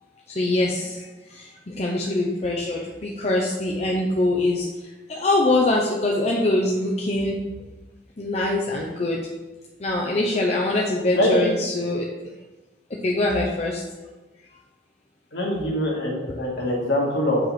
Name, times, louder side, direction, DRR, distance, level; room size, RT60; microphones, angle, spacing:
voice 1, 0.4-1.1 1.3-4.7 5.1-7.4 8.2-9.2 9.8-12.0 13.0-13.8, left 2 dB, 35° left, -1 dB, 0.7 m, -23 dB
voice 2, 11.1-11.5 15.3-17.4, left 1 dB, 65° left, -3 dB, 2.0 m, -23 dB
7.7 x 5.5 x 4.2 m, 1.2 s
head